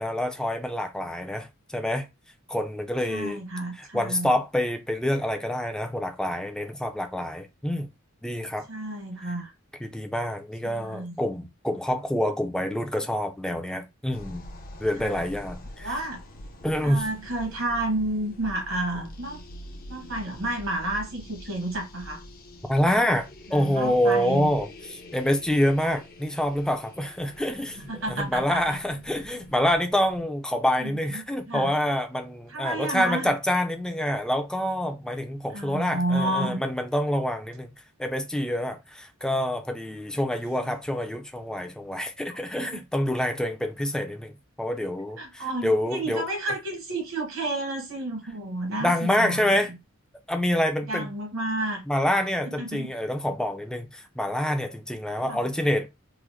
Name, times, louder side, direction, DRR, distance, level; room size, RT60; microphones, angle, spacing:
voice 1, 0.0-2.1 2.5-3.4 3.8-7.9 8.2-8.7 9.8-14.4 14.8-15.9 16.6-17.1 22.7-24.7 25.1-37.7 38.0-46.3 48.8-49.7 50.3-51.1 51.9-55.9, left 1 dB, 5° left, 0.5 m, -27 dB
voice 2, 3.0-4.3 8.7-9.5 10.6-11.2 15.0-15.2 15.8-16.2 16.8-19.4 19.9-22.2 23.5-24.5 27.8-28.8 30.8-31.7 32.5-33.3 35.5-36.6 42.3-42.8 45.2-49.5 50.9-51.8 52.4-52.9 55.2-55.4, right 1 dB, 70° right, 1.4 m, -31 dB
sound 1, 14.1-30.2, left 1 dB, 45° left, 0.7 m, -45 dB
3.8 x 2.1 x 3.1 m
head